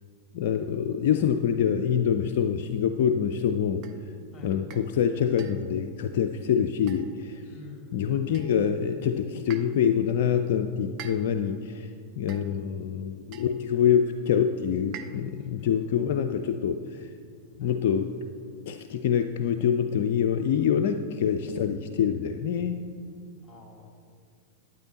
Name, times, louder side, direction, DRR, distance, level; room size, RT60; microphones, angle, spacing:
voice 1, 0.3-3.8 4.4-7.4 7.9-11.9 12.2-17.1 17.6-18.1 18.7-22.8, left 8 dB, 55° left, 7 dB, 0.4 m, -25 dB
sound 1, 3.8-4.1 4.7-5.0 5.4-5.8 6.9-7.3 8.3-8.7 9.5-9.9 11.0-11.5 12.3-12.7 13.3-13.6 14.9-15.5, right 9 dB, 40° right, 0.7 m, -46 dB
voice 2, 7.4-8.2 15.4-15.7 17.6-17.8 23.4-23.9, left 4 dB, 15° left, 0 dB, 2.4 m, -48 dB
11.5 x 9.0 x 4.0 m, 2.2 s
figure-of-eight pair, 90°, 0 cm